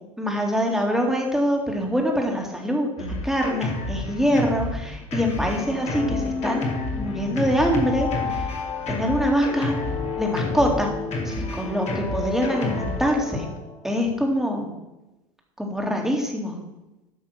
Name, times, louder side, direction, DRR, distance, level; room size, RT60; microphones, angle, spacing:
voice 1, 0.2-6.7 7.0-8.5 8.9-9.7 10.2-10.9 11.2-13.5 13.8-14.7 15.6-16.6, equal, ahead, 1 dB, 2.5 m, -24 dB
Drum kit, 3.0-13.1, left 2 dB, 40° left, 2.7 m, -30 dB
sound 1, 5.4-14.0, left 5 dB, 25° left, 2.3 m, -33 dB
10.5 x 6.0 x 6.0 m, 0.97 s
hypercardioid pair, 85°, 17 cm